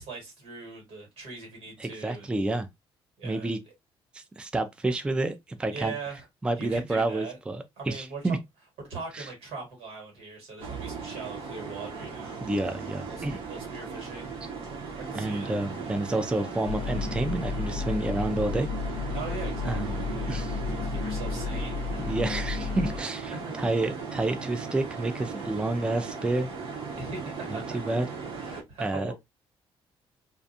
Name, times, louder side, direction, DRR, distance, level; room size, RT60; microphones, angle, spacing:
voice 1, 0.0-2.3 3.2-3.5 5.7-6.3 6.5-7.4 7.8-8.4 8.9-12.4 13.1-14.6 14.9-15.5 19.1-22.1 23.3-23.6 27.0-28.0 28.4-29.1, right 4 dB, 85° right, 1.5 m, -41 dB
voice 2, 1.8-2.7 3.2-3.6 4.1-5.9 6.4-8.4 9.1-9.3 12.4-13.4 15.1-19.0 19.6-20.6 22.1-26.5 27.5-28.1 28.8-29.1, right 2 dB, 10° right, 0.3 m, -29 dB
sound 1, 10.6-28.6, right 5 dB, 60° right, 0.9 m, -37 dB
sound 2, 16.7-23.0, left 4 dB, 60° left, 0.4 m, -32 dB
2.5 x 2.3 x 2.6 m
cardioid pair, 85°, 10 cm